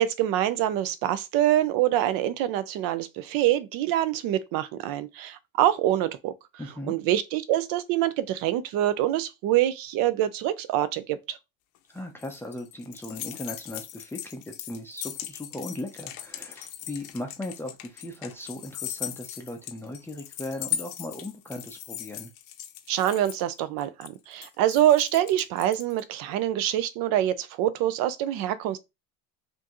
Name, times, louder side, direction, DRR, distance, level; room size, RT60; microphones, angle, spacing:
voice 1, 0.0-6.3 6.9-11.4 22.9-28.8, right 12 dB, 55° right, 0.6 m, -25 dB
voice 2, 6.6-6.9 11.9-22.3, left 1 dB, 5° left, 0.5 m, -38 dB
sound 1, 11.7-26.0, left 11 dB, 85° left, 0.9 m, -38 dB
4.3 x 2.7 x 3.0 m
supercardioid pair, 125°, 40 cm